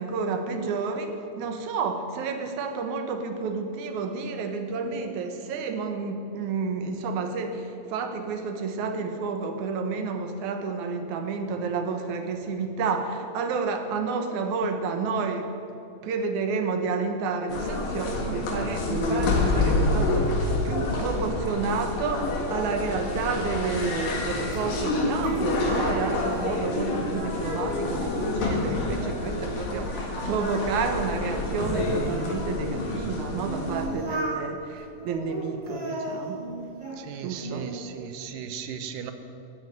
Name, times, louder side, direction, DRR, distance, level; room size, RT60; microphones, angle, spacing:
voice 1, 0.0-15.5 16.0-36.5 37.2-37.7, right 4 dB, 70° right, 5 dB, 2.5 m, -30 dB
sound 1, 17.5-33.9, left 2 dB, 80° left, 3.3 m, -28 dB
Singing, 22.3-26.8 27.1-29.5 29.8-32.5 33.1-34.4 35.0-37.0 37.4-38.0, right 2 dB, 10° right, 2.6 m, -38 dB
voice 2, 37.0-39.1, right 8 dB, 90° right, 8 dB, 2.6 m, -37 dB
13.0 x 9.1 x 9.0 m, 2.6 s
omnidirectional pair, 3.7 m